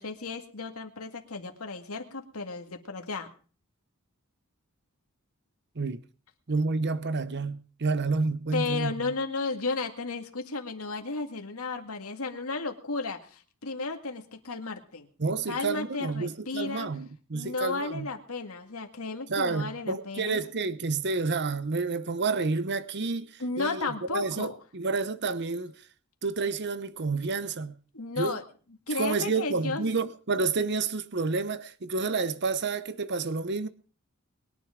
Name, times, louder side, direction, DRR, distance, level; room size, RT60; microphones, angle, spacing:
voice 1, 0.0-3.3 8.5-15.1 15.5-16.9 17.3-20.4 23.4-24.6 27.9-28.4 28.9-29.8, left 3 dB, 85° left, 2.0 m, -34 dB
voice 2, 6.5-9.1 15.2-18.1 19.3-25.7 26.2-27.7 28.2-28.4 28.9-33.7, right 4 dB, 55° right, 0.9 m, -29 dB
21.5 x 10.5 x 5.1 m
head